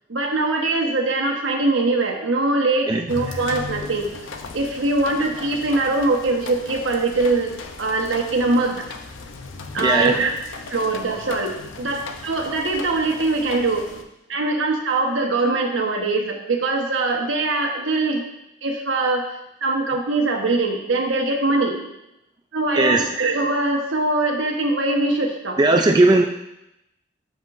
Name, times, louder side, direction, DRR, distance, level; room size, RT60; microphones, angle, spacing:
voice 1, 0.1-4.1 4.5-8.8 9.7-10.3 10.7-14.0 14.3-18.2 18.6-19.2 19.6-21.9 22.5-25.8, right 2 dB, 70° right, 1 dB, 1.3 m, -22 dB
sound 1, 3.1-14.0, left 4 dB, 75° left, 0.7 m, -37 dB
voice 2, 9.8-10.2 22.7-23.0 25.6-26.2, right 2 dB, 20° right, 3 dB, 0.3 m, -17 dB
13.0 x 5.5 x 2.6 m, 0.87 s
head